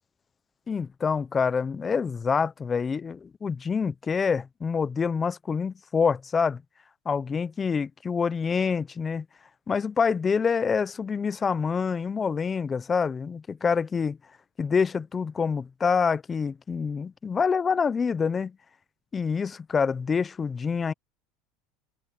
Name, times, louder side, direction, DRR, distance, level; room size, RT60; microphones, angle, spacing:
voice 1, 0.7-6.6 7.1-9.2 9.7-14.2 14.6-18.6 19.1-20.9, left 5 dB, 25° left, 0.9 m, -26 dB
hypercardioid pair, 95°, 0 cm